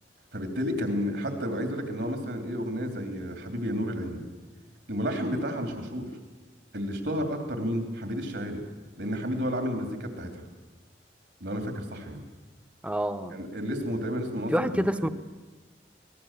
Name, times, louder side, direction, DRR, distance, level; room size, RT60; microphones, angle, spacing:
voice 1, 0.3-4.2 4.9-6.1 6.7-8.6 9.0-10.4 11.4-12.2 13.3-15.1, equal, 70° right, 5 dB, 3.3 m, -31 dB
voice 2, 12.8-13.4 14.5-15.1, equal, 5° right, 10 dB, 0.8 m, -27 dB
24.5 x 19.0 x 7.5 m, 1.2 s
head